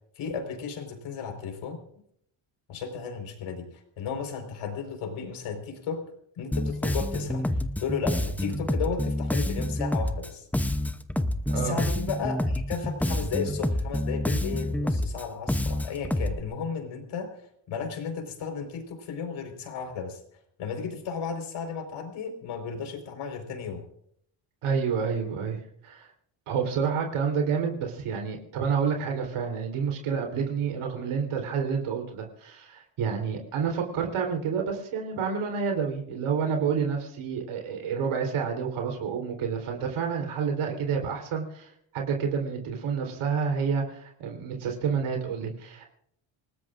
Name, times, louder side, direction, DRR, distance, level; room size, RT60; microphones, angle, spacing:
voice 1, 0.1-1.8 2.7-6.1 6.4-10.5 11.5-17.3 17.7-20.2 20.6-23.8, left 6 dB, 70° left, 5 dB, 4.6 m, -34 dB
Bass guitar, 6.5-16.4, left 1 dB, 5° left, 0.6 m, -28 dB
voice 2, 11.5-11.8 24.6-26.1 26.5-45.9, right 6 dB, 80° right, 2 dB, 3.8 m, -29 dB
28.5 x 19.0 x 2.5 m, 0.68 s
cardioid pair, 140°, 50 cm